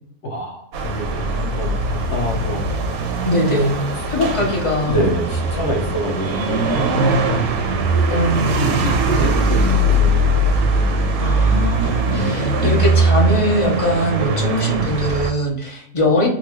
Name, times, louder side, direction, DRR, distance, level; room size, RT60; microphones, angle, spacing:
voice 1, 0.2-2.6 3.5-3.9 4.3-4.5 4.9-7.5 8.4-10.3 12.1-12.3, right 1 dB, 60° left, 1 dB, 0.9 m, -26 dB
sound 1, 0.7-15.3, right 2 dB, 80° right, 1.1 m, -20 dB
voice 2, 3.2-3.7 4.1-5.0 8.1-8.8 11.2-16.3, left 1 dB, 35° left, -2 dB, 0.5 m, -21 dB
4.0 x 2.3 x 2.9 m, 0.70 s
omnidirectional pair, 1.6 m